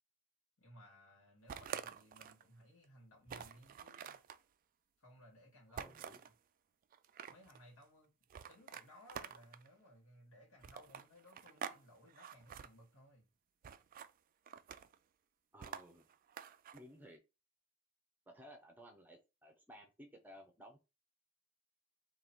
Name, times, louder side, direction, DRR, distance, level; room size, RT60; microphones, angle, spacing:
voice 1, 0.6-4.2 5.0-6.0 7.3-8.1 8.5-13.3, equal, 65° left, 2.4 m, -61 dB
sound 1, 1.5-2.4 2.8-2.9 3.3-4.4 5.8-6.3 6.9-7.6 8.3-9.7 10.6-11.8 12.1-12.7 13.6-14.1 14.5-15.0 15.6-16.8, right 8 dB, 40° right, 0.3 m, -48 dB
voice 2, 5.7-6.2 15.5-16.0 16.7-17.2 18.3-20.8, equal, 10° right, 0.7 m, -57 dB
3.9 x 2.9 x 4.4 m
head